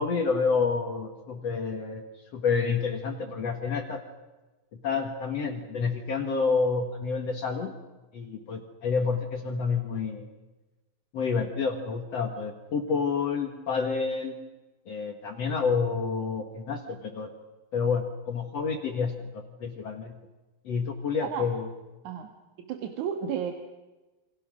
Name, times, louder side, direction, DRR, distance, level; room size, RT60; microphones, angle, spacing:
voice 1, 0.0-2.0 2.3-4.0 4.8-7.7 8.1-10.3 11.1-14.3 14.9-17.3 17.7-20.2 20.7-21.7, left 5 dB, 50° left, 4 dB, 2.4 m, -29 dB
voice 2, 22.6-23.5, right 8 dB, 60° right, 5 dB, 2.8 m, -32 dB
28.5 x 27.0 x 6.3 m, 1.1 s
omnidirectional pair, 4.2 m